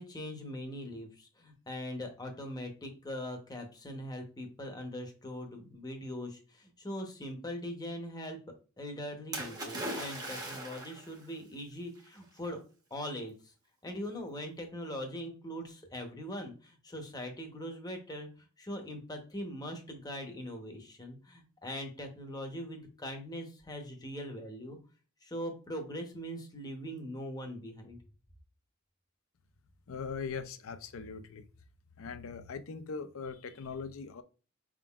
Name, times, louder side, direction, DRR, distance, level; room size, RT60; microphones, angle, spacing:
voice 1, 0.0-8.4 8.8-12.6 12.9-13.3 13.8-18.3 18.6-24.8 25.2-28.0, equal, 20° left, 0.8 m, -41 dB
Splash splatter, 9.3-11.1 12.1-12.2, right 1 dB, 20° right, 0.8 m, -39 dB
voice 2, 29.9-31.5 32.0-34.2, left 5 dB, 70° left, 0.5 m, -40 dB
4.7 x 3.7 x 2.3 m
head